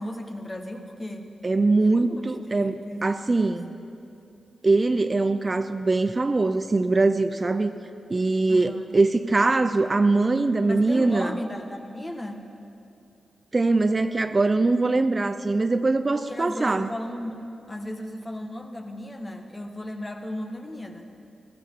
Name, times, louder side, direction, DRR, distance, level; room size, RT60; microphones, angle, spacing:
voice 1, 0.0-1.3 1.8-2.2 2.5-3.1 3.4-3.6 8.5-8.8 10.7-12.5 16.1-21.1, left 1 dB, 30° left, 4 dB, 1.3 m, -35 dB
voice 2, 1.4-3.7 4.6-7.7 8.1-11.4 13.5-16.9, right 3 dB, 40° right, 10 dB, 0.5 m, -22 dB
15.5 x 13.5 x 3.7 m, 2.8 s
cardioid pair, 50°, 0 cm